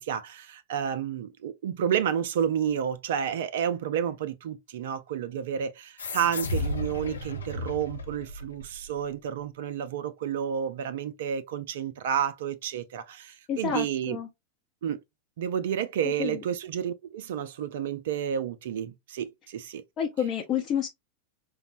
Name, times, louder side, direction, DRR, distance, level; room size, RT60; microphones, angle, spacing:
voice 1, 0.0-14.2 14.8-15.0 15.4-19.8, right 8 dB, 55° right, 0.3 m, -30 dB
sound 1, 6.0-9.0, left 2 dB, 70° left, 0.7 m, -34 dB
voice 2, 13.5-14.3 16.0-16.4 20.0-20.9, left 9 dB, 35° left, 0.6 m, -29 dB
5.0 x 2.0 x 2.5 m
figure-of-eight pair, 90°, 0 cm